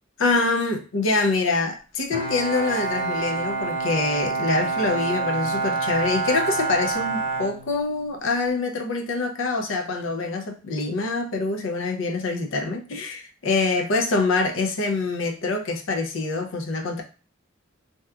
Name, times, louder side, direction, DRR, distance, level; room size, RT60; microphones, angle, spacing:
voice 1, 0.2-17.0, left 3 dB, 75° left, 0.5 m, -25 dB
Bowed string instrument, 2.1-8.3, right 4 dB, 30° right, 0.8 m, -27 dB
2.8 x 2.3 x 2.3 m
head